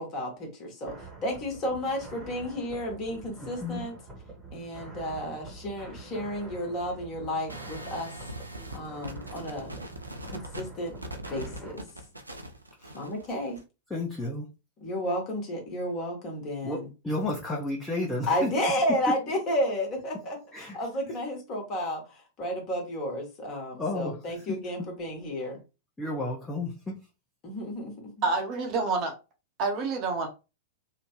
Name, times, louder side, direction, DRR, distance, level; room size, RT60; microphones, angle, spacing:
voice 1, 0.0-4.0 4.5-8.1 8.7-9.8 10.3-10.9 11.3-11.8 12.9-13.6 14.8-16.9 18.3-25.6 27.4-27.9, left 1 dB, 35° left, 1.2 m, -32 dB
sound 1, 0.8-11.7, right 3 dB, 5° right, 1.1 m, -46 dB
voice 2, 3.4-3.9 12.8-12.9 13.9-14.5 16.6-18.5 20.5-20.8 23.8-24.6 26.0-27.0, left 2 dB, 10° left, 0.7 m, -32 dB
sound 2, 7.5-13.6, right 1 dB, 85° right, 0.4 m, -41 dB
voice 3, 28.2-29.1 29.6-30.3, right 3 dB, 40° right, 0.7 m, -27 dB
2.8 x 2.2 x 3.0 m
figure-of-eight pair, 95°, 0 cm